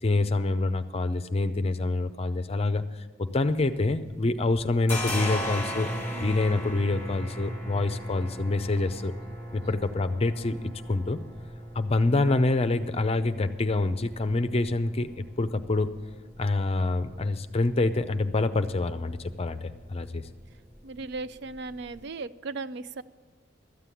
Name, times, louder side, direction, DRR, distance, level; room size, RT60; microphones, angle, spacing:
voice 1, 0.0-2.8 3.2-5.9 6.2-9.1 9.5-11.2 11.7-15.9 16.4-20.2, left 2 dB, 30° left, 10 dB, 0.6 m, -26 dB
sound 1, 3.3-4.2 4.5-22.0, equal, 10° left, 2.1 m, -39 dB
voice 2, 20.8-23.0, right 3 dB, 60° right, 15 dB, 0.4 m, -37 dB
13.5 x 7.6 x 8.3 m, 1.3 s
head